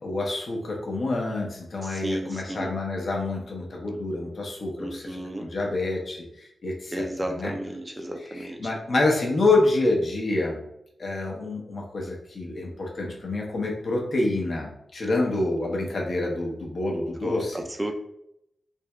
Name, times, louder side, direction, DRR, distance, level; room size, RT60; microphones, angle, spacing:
voice 1, 0.0-7.5 8.3-10.6 11.0-17.6, left 2 dB, 50° left, -1 dB, 0.8 m, -27 dB
voice 2, 1.8-2.7 4.8-5.5 6.9-8.7 17.2-17.5 17.8-17.9, right 1 dB, 15° right, 4 dB, 0.4 m, -33 dB
3.5 x 2.8 x 2.2 m, 0.77 s
wide cardioid pair, 140°, 0 cm